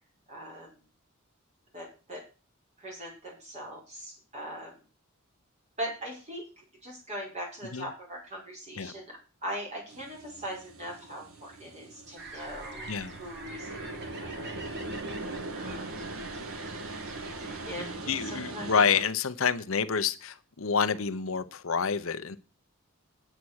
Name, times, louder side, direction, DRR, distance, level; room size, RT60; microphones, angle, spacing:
voice 1, 0.3-0.8 1.7-2.3 2.8-4.8 5.8-6.4 6.8-14.6 15.5-15.9 17.6-18.7, equal, 35° right, 5.6 m, -40 dB
sound 1, 9.9-19.0, right 2 dB, 85° right, 1.5 m, -40 dB
sound 2, 12.2-18.0, right 2 dB, 55° right, 2.4 m, -45 dB
voice 2, 12.9-13.2 18.1-22.4, left 6 dB, 70° left, 0.8 m, -28 dB
9.2 x 8.4 x 6.4 m
head